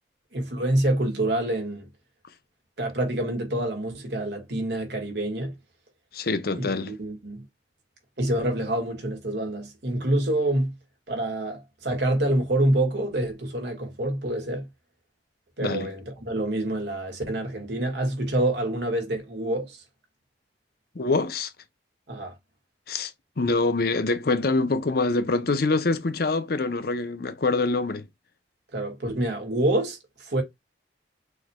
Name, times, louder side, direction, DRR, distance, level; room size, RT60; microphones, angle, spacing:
voice 1, 0.3-1.9 2.8-5.6 6.6-7.5 8.2-10.7 11.1-14.7 15.6-19.8 22.1-22.4 28.7-30.4, right 1 dB, 65° right, 2.0 m, -27 dB
voice 2, 6.1-6.9 15.6-15.9 20.9-21.5 22.9-23.1 23.4-28.1, left 3 dB, 55° left, 0.7 m, -25 dB
6.2 x 3.2 x 2.3 m
head